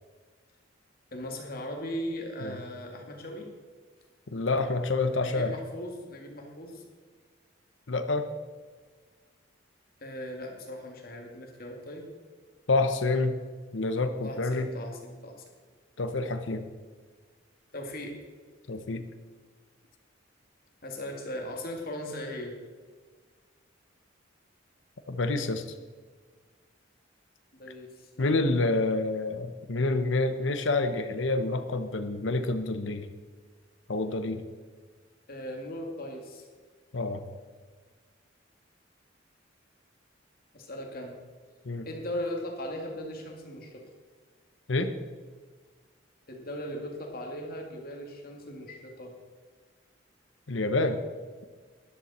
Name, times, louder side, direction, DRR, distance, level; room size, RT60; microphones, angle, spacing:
voice 1, 1.1-3.5 5.2-6.8 10.0-12.0 14.2-15.4 17.7-18.2 20.8-22.5 27.5-28.3 35.3-36.4 40.5-41.1 41.8-43.8 46.3-49.1, left 1 dB, 50° left, 1 dB, 2.3 m, -38 dB
voice 2, 4.3-5.5 7.9-8.3 12.7-13.4 13.7-14.7 16.0-16.7 18.7-19.0 25.1-25.6 28.2-33.1 33.9-34.4 36.9-37.2 41.7-41.9 44.7-44.9 50.5-51.0, left 2 dB, 75° left, 8 dB, 0.9 m, -28 dB
12.5 x 11.5 x 4.3 m, 1.5 s
head